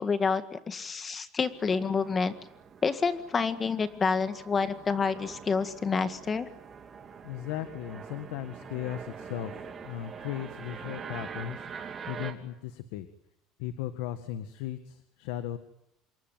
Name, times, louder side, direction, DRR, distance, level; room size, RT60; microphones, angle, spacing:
voice 1, 0.0-2.3 2.8-6.5, left 5 dB, 20° left, 10 dB, 1.9 m, -28 dB
sound 1, 1.4-12.3, right 6 dB, 25° right, 3.0 m, -44 dB
voice 2, 7.2-13.1 13.6-15.6, left 12 dB, 90° left, 10 dB, 1.7 m, -37 dB
27.5 x 23.0 x 9.1 m, 0.80 s
cardioid pair, 150°, 0 cm